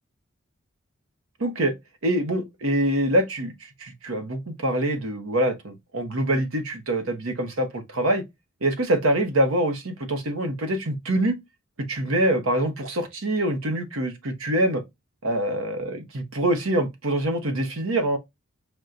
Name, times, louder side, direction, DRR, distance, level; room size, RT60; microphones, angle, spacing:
voice 1, 1.4-1.7 2.0-8.2 8.6-11.4 11.9-14.8 15.2-18.2, right 1 dB, 85° right, 1.0 m, -25 dB
6.1 x 2.2 x 2.4 m
head